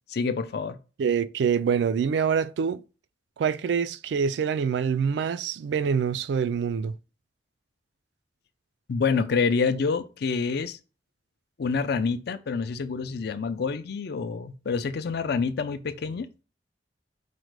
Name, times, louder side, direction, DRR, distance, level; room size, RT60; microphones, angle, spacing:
voice 1, 0.1-0.8 8.9-10.8 11.6-16.3, left 5 dB, 65° left, 0.4 m, -27 dB
voice 2, 1.0-2.8 3.4-6.9, right 6 dB, 70° right, 0.3 m, -25 dB
5.0 x 2.2 x 4.6 m
head